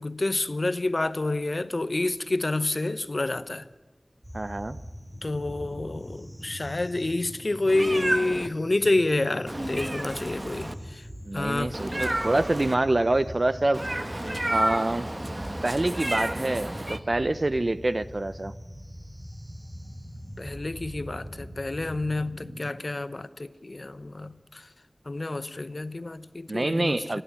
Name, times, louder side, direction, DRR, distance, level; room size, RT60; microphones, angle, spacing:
voice 1, 0.0-3.6 5.2-10.7 11.3-11.7 20.4-24.3 25.1-27.2, left 2 dB, 65° left, 0.9 m, -28 dB
sound 1, 4.2-22.8, equal, 15° right, 3.9 m, -42 dB
voice 2, 4.3-4.8 11.3-13.9 14.5-15.1 15.6-18.5 26.5-27.2, right 2 dB, 60° right, 0.7 m, -26 dB
Meow, 7.7-8.5 9.5-10.7 11.7-12.7 13.7-17.0, right 1 dB, 35° right, 1.2 m, -30 dB
28.0 x 11.5 x 10.0 m
wide cardioid pair, 50°, 0 cm